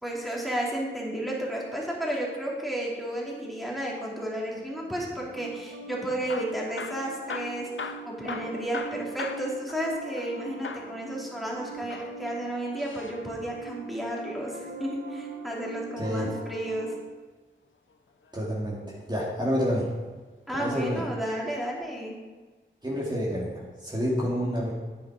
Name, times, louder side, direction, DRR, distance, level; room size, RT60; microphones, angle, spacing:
voice 1, 0.0-16.9 20.5-22.1, right 1 dB, ahead, -4 dB, 3.0 m, -32 dB
Piano, 4.5-17.0, right 3 dB, 65° right, 1.1 m, -42 dB
Hammer / Drill, 6.1-10.4 10.6-11.0 11.8-13.2 15.0-16.2 17.9-18.4 19.1-19.9 20.6-20.8 21.1-21.2 21.9-22.0, left 5 dB, 80° left, 0.6 m, -41 dB
voice 2, 16.0-16.3 18.3-19.9 20.6-21.1 22.8-24.7, equal, 20° right, -6 dB, 2.5 m, -28 dB
9.9 x 9.3 x 4.9 m, 1.3 s
wide cardioid pair, 75°, 20 cm